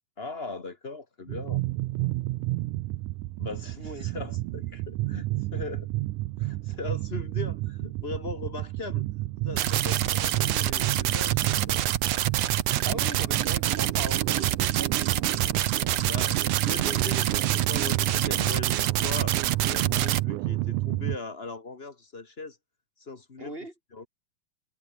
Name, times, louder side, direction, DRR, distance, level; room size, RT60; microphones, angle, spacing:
voice 1, 0.2-1.6 3.4-5.9 6.4-9.0 9.4-11.8 16.0-19.4 19.7-22.6 23.0-23.5 23.9-24.1, left 3 dB, 40° left, 0.9 m, -39 dB
sound 1, 1.3-21.2, right 18 dB, 85° right, 2.2 m, -30 dB
voice 2, 3.8-4.1 10.4-10.5 12.8-15.6 23.4-23.7, right 1 dB, 15° right, 3.3 m, -40 dB
sound 2, 9.6-20.2, right 12 dB, 65° right, 2.0 m, -27 dB
omnidirectional pair, 3.7 m